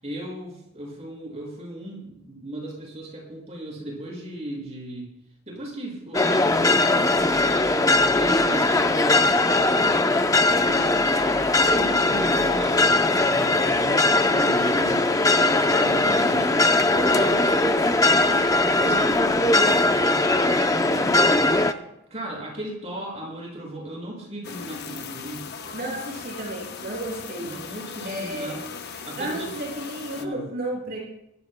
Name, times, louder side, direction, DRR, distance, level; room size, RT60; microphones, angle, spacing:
voice 1, 0.0-5.1 5.5-10.9 11.5-16.6 17.1-17.5 18.1-21.4 22.1-25.5 27.4-28.6 29.0-29.5 30.1-30.4, right 1 dB, 30° right, -2 dB, 5.8 m, -36 dB
sound 1, 6.1-21.7, left 2 dB, 15° left, 0.5 m, -20 dB
voice 2, 16.1-16.5 16.9-17.9 25.7-27.5 28.0-28.5 29.2-31.0, right 1 dB, 45° right, -3 dB, 5.6 m, -33 dB
sound 2, 24.4-30.3, left 6 dB, 50° left, 0.9 m, -38 dB
22.0 x 15.0 x 2.2 m, 0.83 s
head